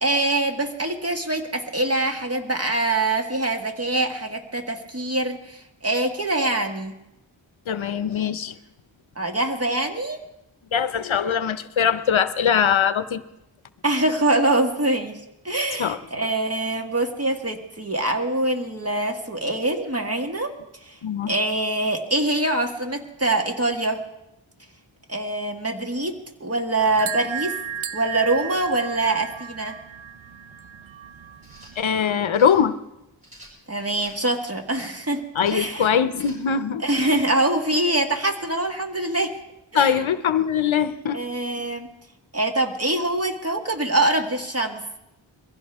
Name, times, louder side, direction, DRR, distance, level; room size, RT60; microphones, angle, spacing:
voice 1, 0.0-6.9 9.2-10.2 13.8-15.2 15.4-20.5 21.3-24.0 25.1-26.1 26.4-27.5 27.9-29.8 33.7-35.2 35.5-35.9 36.8-39.3 39.7-40.0 41.1-41.9 42.3-44.8, right 2 dB, 30° right, 3 dB, 1.6 m, -24 dB
voice 2, 7.7-8.5 10.7-13.2 15.8-16.0 21.0-21.3 31.8-32.7 35.3-37.3 39.7-41.2, left 7 dB, 75° left, 13 dB, 0.7 m, -22 dB
sound 1, 26.8-31.8, right 8 dB, 75° right, 0.7 m, -34 dB
sound 2, 31.4-31.7 32.3-32.6 33.2-34.2 34.7-35.0 35.4-35.8 36.1-36.5 36.8-37.1, equal, 15° right, 5.6 m, -47 dB
22.0 x 15.5 x 3.5 m, 0.88 s
wide cardioid pair, 60°, 47 cm